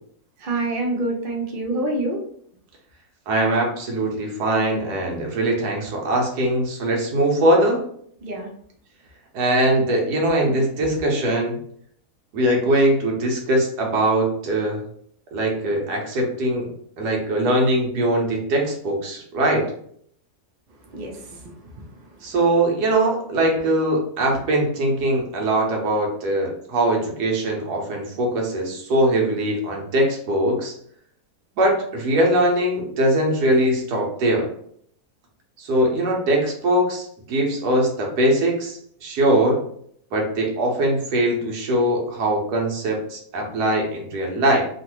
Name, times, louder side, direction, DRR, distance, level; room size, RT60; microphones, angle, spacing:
voice 1, 0.4-2.2 8.2-8.5 20.9-21.8, right 2 dB, 50° right, 0 dB, 0.6 m, -27 dB
voice 2, 3.3-7.8 9.3-11.6 12.3-14.8 15.3-16.7 17.0-19.7 22.2-30.7 31.6-34.5 35.6-39.6 40.1-44.7, right 1 dB, 80° right, 0 dB, 1.4 m, -21 dB
3.1 x 2.4 x 3.0 m, 0.64 s
omnidirectional pair, 1.7 m